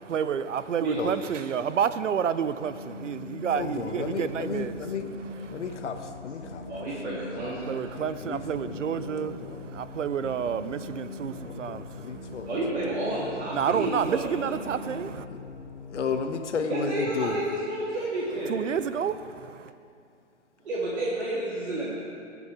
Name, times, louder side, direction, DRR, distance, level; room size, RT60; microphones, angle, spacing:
voice 1, 0.0-4.7 5.5-5.6 7.6-12.5 13.5-15.3 18.5-19.7, right 7 dB, 75° right, 0.7 m, -30 dB
voice 2, 0.8-1.2 6.7-7.8 12.5-14.4 16.7-18.6 20.7-21.9, right 1 dB, 60° right, 2.7 m, -30 dB
sound 1, 2.6-16.2, left 4 dB, 35° left, 2.2 m, -42 dB
voice 3, 3.5-5.1 5.4-7.5 8.2-9.7 11.2-12.6 12.8-12.9 14.9-15.0 15.3-15.4 15.9-17.4, left 5 dB, 70° left, 1.2 m, -34 dB
18.0 x 7.0 x 4.9 m
figure-of-eight pair, 130°, 37 cm